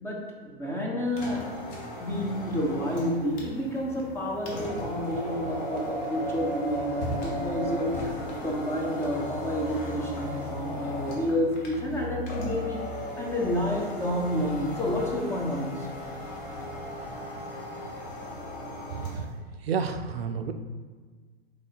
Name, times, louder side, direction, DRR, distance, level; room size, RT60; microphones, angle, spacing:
voice 1, 0.0-1.4 2.0-12.8 13.2-15.9, equal, 10° left, -2 dB, 0.5 m, -30 dB
sound 1, 1.1-19.3, left 1 dB, 40° left, 1.0 m, -36 dB
voice 2, 18.9-19.3 19.6-20.5, right 6 dB, 70° right, 7 dB, 0.5 m, -30 dB
3.8 x 3.2 x 4.0 m, 1.5 s
figure-of-eight pair, 105°, 31 cm